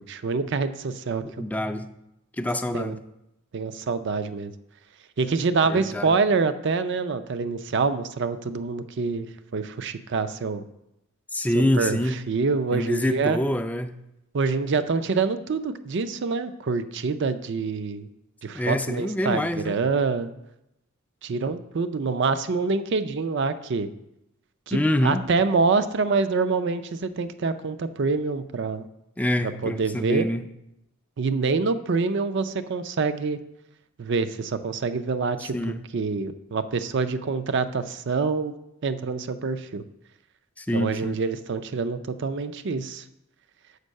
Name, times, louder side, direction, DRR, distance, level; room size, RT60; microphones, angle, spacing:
voice 1, 0.1-1.4 2.7-3.0 3.5-4.5 5.2-9.3 9.5-10.6 11.5-13.4 14.3-18.1 18.4-20.3 21.2-23.9 24.7-28.9 29.4-30.3 31.2-33.4 34.0-38.5 38.8-39.8 40.7-43.0, right 4 dB, 60° right, 12 dB, 0.5 m, -26 dB
voice 2, 1.4-1.9 2.4-3.0 5.6-6.2 11.3-12.2 12.7-13.9 18.5-19.8 24.7-25.2 29.2-30.4 35.4-35.8 40.6-41.2, left 1 dB, 5° left, 8 dB, 0.3 m, -26 dB
6.6 x 5.3 x 6.3 m, 0.87 s
head